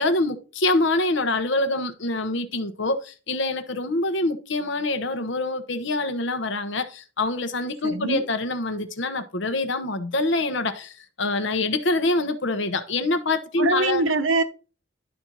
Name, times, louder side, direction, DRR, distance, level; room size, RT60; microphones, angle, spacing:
voice 1, 0.0-14.0, left 2 dB, 70° left, 1.1 m, -25 dB
voice 2, 7.8-8.2 13.6-14.4, right 3 dB, 90° right, 1.1 m, -23 dB
11.5 x 4.4 x 4.0 m
head